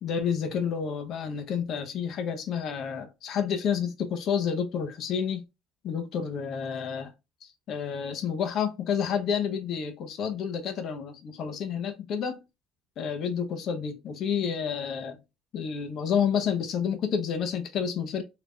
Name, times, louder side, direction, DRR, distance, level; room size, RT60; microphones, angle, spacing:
voice 1, 0.0-5.4 5.8-7.1 7.4-12.4 13.0-15.2 15.5-18.2, left 7 dB, 55° left, 0.9 m, -29 dB
3.5 x 2.9 x 2.3 m
cardioid pair, 120°, 0 cm